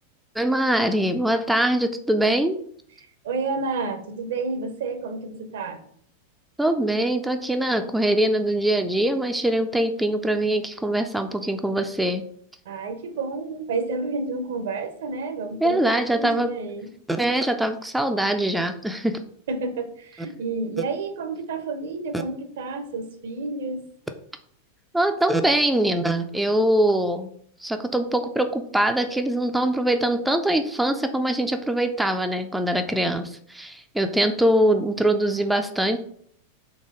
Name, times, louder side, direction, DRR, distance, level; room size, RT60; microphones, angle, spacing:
voice 1, 0.4-2.6 6.6-12.2 15.6-16.5 17.1-19.2 24.9-27.3 27.6-36.0, right 1 dB, 5° right, 6 dB, 0.3 m, -23 dB
voice 2, 3.2-5.8 12.7-16.9 19.5-23.8, right 3 dB, 60° right, 8 dB, 0.6 m, -30 dB
4.0 x 3.2 x 3.7 m, 0.63 s
figure-of-eight pair, 90°, 0 cm